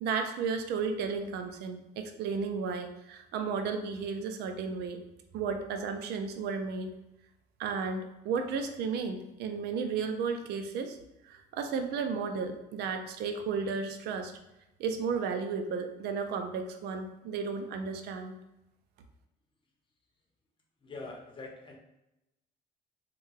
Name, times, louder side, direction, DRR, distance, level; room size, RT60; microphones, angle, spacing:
voice 1, 0.0-5.0 5.3-6.9 7.6-11.0 11.2-14.3 14.8-18.4, right 5 dB, 75° right, 6 dB, 0.4 m, -33 dB
voice 2, 20.8-21.8, left 3 dB, 30° left, 0 dB, 0.7 m, -44 dB
3.4 x 2.2 x 3.2 m, 0.93 s
cardioid pair, 110°, 17 cm